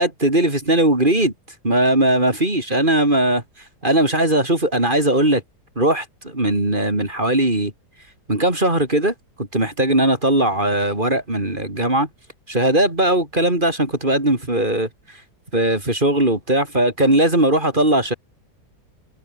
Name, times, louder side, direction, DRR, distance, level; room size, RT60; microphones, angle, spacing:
voice 1, 0.0-1.3 1.6-3.4 3.8-5.4 5.8-7.7 8.3-12.1 12.5-14.9 15.5-18.1, right 1 dB, 30° right, 4.4 m, -19 dB
omnidirectional pair, 1.7 m